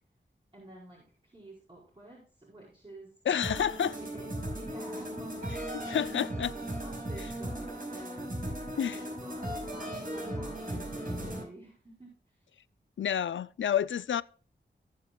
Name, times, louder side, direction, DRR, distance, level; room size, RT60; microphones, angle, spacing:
voice 1, 0.5-3.1 3.9-8.5 9.2-12.5, right 1 dB, 25° right, 5.0 m, -50 dB
voice 2, 3.3-4.0 5.9-6.5 8.8-9.0 13.0-14.2, left 9 dB, 85° left, 0.4 m, -29 dB
sound 1, 3.4-11.4, right 1 dB, 45° right, 5.9 m, -37 dB
19.0 x 7.3 x 2.3 m
cardioid pair, 55°, 19 cm